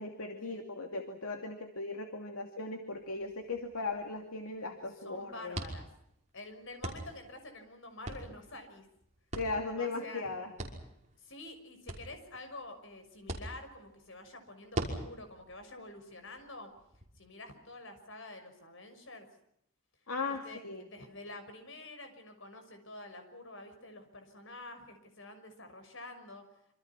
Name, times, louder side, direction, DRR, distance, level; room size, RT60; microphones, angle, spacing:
voice 1, 0.0-5.6 9.4-10.5 20.1-20.9, left 3 dB, 75° left, 4 dB, 2.6 m, -38 dB
sound 1, 2.9-17.0, right 1 dB, 35° right, 5.7 m, -45 dB
voice 2, 5.0-5.9 6.3-8.9 9.8-10.3 11.2-16.7 17.2-19.3 20.3-26.4, left 2 dB, 60° left, 7 dB, 6.2 m, -48 dB
27.5 x 26.5 x 6.0 m, 0.76 s
head